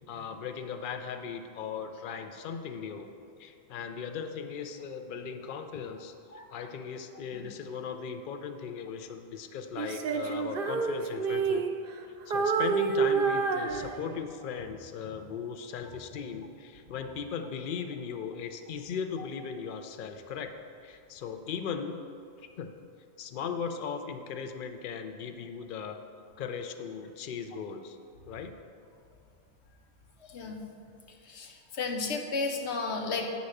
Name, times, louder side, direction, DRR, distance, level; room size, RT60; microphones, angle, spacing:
voice 1, 0.1-3.1 3.4-6.1 6.5-11.6 12.3-20.6 20.8-22.0 22.6-22.7 23.2-26.0 26.4-28.0 28.2-28.5, left 6 dB, 55° left, 7 dB, 0.7 m, -38 dB
Female singing, 9.8-12.0 12.3-14.4, right 5 dB, 60° right, 0.8 m, -29 dB
voice 2, 30.2-30.6 31.3-33.3, left 4 dB, 85° left, 3 dB, 1.2 m, -33 dB
9.7 x 4.1 x 6.4 m, 2.4 s
omnidirectional pair, 1.1 m